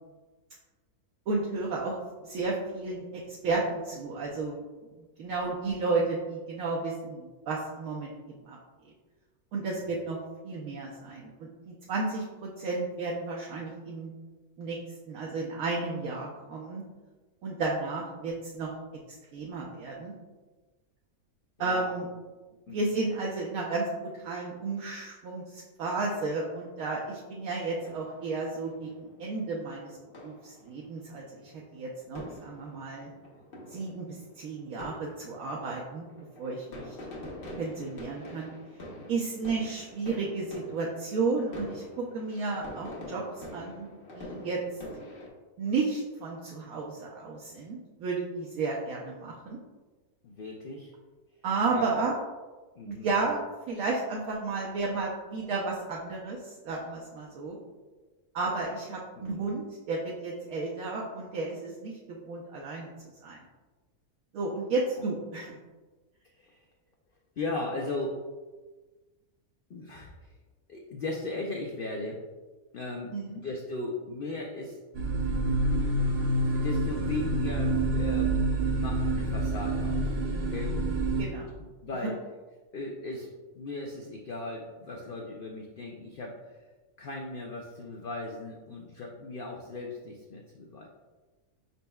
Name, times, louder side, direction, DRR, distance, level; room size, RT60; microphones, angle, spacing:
voice 1, 1.3-2.0 2.2-4.6 5.2-8.1 8.5-8.6 9.5-10.2 10.4-14.1 14.6-14.8 15.1-16.8 17.4-18.7 19.3-20.1 21.6-22.1 22.7-30.0 30.2-33.1 33.7-36.1 36.4-37.0 37.6-38.5 39.1-43.2 43.5-43.9 44.1-44.8 45.6-49.6 51.4-52.1 52.9-57.6 58.3-63.4 64.3-65.6 73.1-73.4 81.2-81.5, right 3 dB, 75° right, -2 dB, 1.0 m, -33 dB
voice 2, 21.6-21.9 22.7-23.0 36.7-37.0 39.0-39.1 50.2-50.9 51.7-51.9 52.8-53.1 59.2-59.4 66.3-66.6 67.4-68.2 69.7-70.3 70.7-72.2 72.7-74.8 75.8-76.1 76.5-80.8 81.6-82.2 82.7-86.6 87.0-90.9, left 2 dB, 85° left, 0 dB, 0.4 m, -37 dB
sound 1, 27.5-45.3, left 1 dB, 45° left, 1.0 m, -46 dB
sound 2, 74.9-81.2, right 2 dB, 55° right, 0.7 m, -27 dB
5.2 x 4.1 x 2.2 m, 1.3 s
omnidirectional pair, 1.5 m